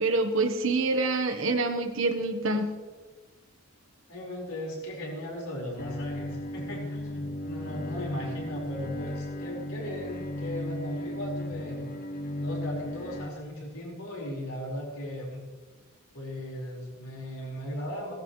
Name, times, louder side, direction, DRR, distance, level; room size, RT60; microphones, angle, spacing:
voice 1, 0.0-2.7, right 3 dB, 65° right, 5 dB, 1.2 m, -26 dB
voice 2, 4.1-11.9 12.3-15.5 16.1-18.1, equal, 85° left, -3 dB, 4.8 m, -37 dB
Bowed string instrument, 5.8-13.3, left 1 dB, 40° left, 0.6 m, -35 dB
17.0 x 14.0 x 3.2 m, 1.3 s
head